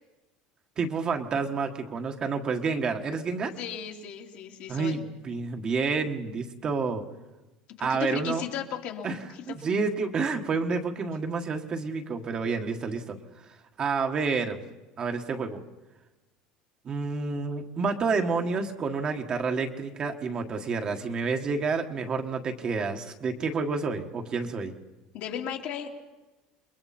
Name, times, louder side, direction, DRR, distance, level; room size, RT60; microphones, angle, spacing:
voice 1, 0.8-3.5 4.7-5.0 5.2-7.0 7.8-8.4 9.0-9.2 9.5-13.2 13.8-14.6 15.0-15.6 16.8-24.7, right 4 dB, 30° right, 4 dB, 1.6 m, -29 dB
voice 2, 3.6-5.0 7.8-9.4 25.1-26.0, left 9 dB, 60° left, 2 dB, 2.4 m, -35 dB
29.0 x 21.5 x 4.3 m, 1.1 s
cardioid pair, 135°, 3 cm